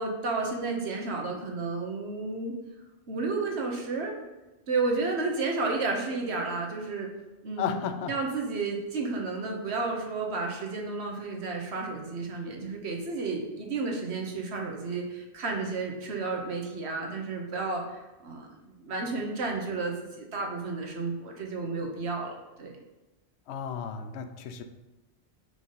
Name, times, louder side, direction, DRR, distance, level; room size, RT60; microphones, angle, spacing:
voice 1, 0.0-2.5 3.1-4.1 4.7-7.1 7.4-7.8 8.1-22.3 22.6-22.7, right 3 dB, 80° right, 1 dB, 1.3 m, -32 dB
voice 2, 7.6-8.1 23.5-24.6, left 8 dB, 85° left, 8 dB, 0.9 m, -33 dB
4.9 x 3.8 x 5.4 m, 1.1 s
omnidirectional pair, 1.1 m